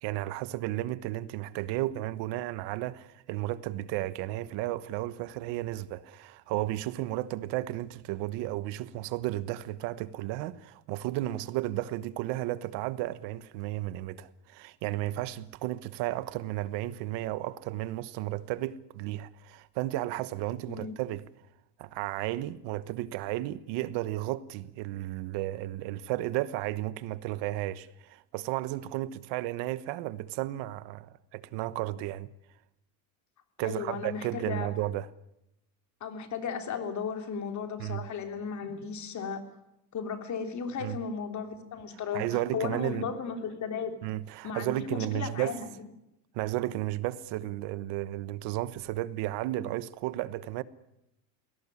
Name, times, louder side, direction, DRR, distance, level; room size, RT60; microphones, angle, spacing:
voice 1, 0.0-21.2 21.8-32.3 33.6-35.1 37.8-38.1 40.8-41.0 42.1-43.1 44.0-45.6 46.3-50.6, right 15 dB, 65° right, 1.2 m, -33 dB
voice 2, 33.6-34.7 36.0-39.4 39.9-44.1 44.4-45.7, left 6 dB, 40° left, 3.4 m, -35 dB
21.5 x 18.0 x 9.8 m
cardioid pair, 130°, 45 cm